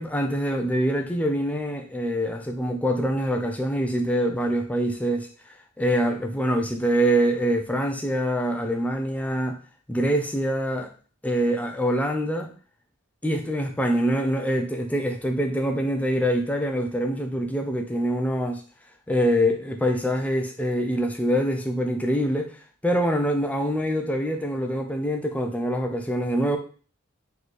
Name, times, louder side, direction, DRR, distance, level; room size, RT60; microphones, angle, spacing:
voice 1, 0.0-9.6 9.9-10.9 11.2-12.5 13.2-18.6 19.1-26.6, equal, 5° left, 3 dB, 0.5 m, -25 dB
3.2 x 3.2 x 4.1 m, 0.39 s
head